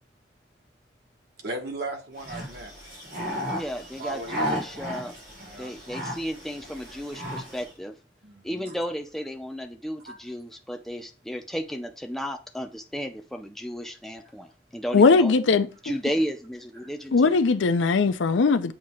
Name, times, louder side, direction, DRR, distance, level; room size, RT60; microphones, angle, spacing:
voice 1, 1.4-2.7 4.0-4.4 5.4-5.8 8.2-8.8 10.0-10.2 16.8-16.9, right 2 dB, 55° right, 1.0 m, -37 dB
sound 1, 2.2-7.7, equal, 90° right, 3.5 m, -34 dB
voice 2, 3.5-5.1 5.6-7.9 8.4-15.3 15.8-17.4, equal, ahead, 0.4 m, -33 dB
voice 3, 14.9-15.7 17.1-18.7, left 4 dB, 75° left, 0.5 m, -19 dB
7.6 x 2.8 x 4.3 m
head